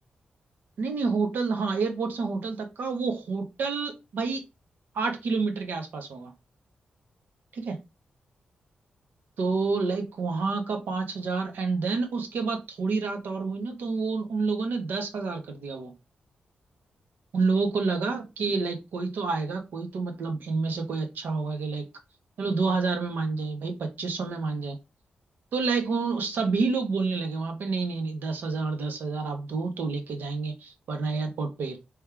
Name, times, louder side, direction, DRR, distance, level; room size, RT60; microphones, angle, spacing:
voice 1, 0.8-4.4 4.9-6.3 7.5-7.8 9.4-15.9 17.3-21.8 22.4-24.8 25.5-31.8, right 4 dB, 85° right, 5 dB, 1.2 m, -29 dB
3.6 x 3.2 x 4.6 m, 0.25 s
wide cardioid pair, 140°, 3 cm